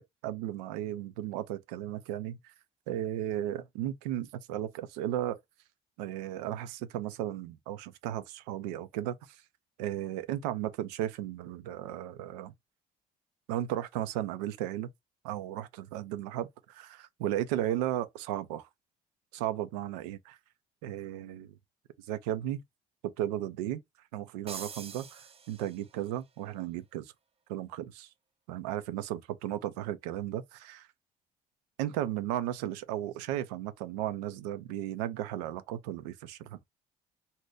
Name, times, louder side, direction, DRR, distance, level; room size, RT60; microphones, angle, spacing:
voice 1, 0.0-2.5 2.9-5.4 6.0-9.4 9.8-12.5 13.5-14.9 15.2-18.7 19.3-20.4 20.8-21.5 22.1-22.6 23.0-23.8 24.1-27.1 27.5-28.1 28.5-30.9 31.8-36.6, right 12 dB, 85° right, 0.4 m, -35 dB
sound 1, 24.5-26.1, right 5 dB, 30° right, 0.5 m, -45 dB
2.7 x 2.2 x 3.4 m
hypercardioid pair, 55°, 20 cm